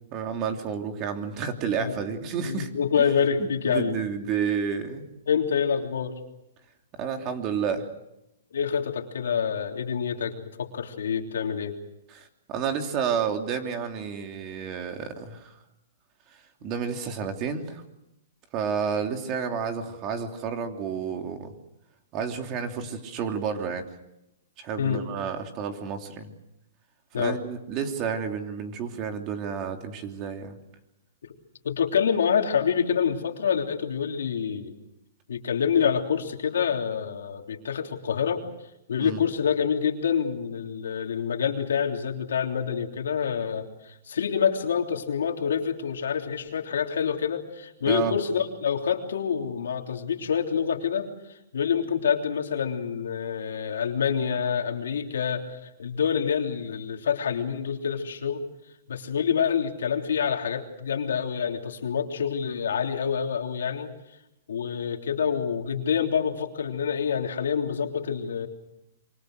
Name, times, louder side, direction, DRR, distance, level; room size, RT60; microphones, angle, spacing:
voice 1, 0.1-2.7 3.0-3.1 3.4-5.1 7.0-7.8 12.1-15.5 16.6-17.8 18.5-21.5 22.1-23.9 24.6-26.3 27.2-30.5 39.0-39.2 47.9-48.1, right 6 dB, 30° right, 5 dB, 3.1 m, -30 dB
voice 2, 2.4-4.0 5.3-6.1 8.5-11.8 24.8-25.0 27.1-27.4 31.6-34.7 35.3-38.4 38.9-51.1 51.5-58.4 58.9-63.9 64.5-68.5, left 7 dB, 85° left, 3 dB, 3.4 m, -27 dB
26.5 x 24.5 x 6.6 m, 0.87 s
hypercardioid pair, 150°, 0 cm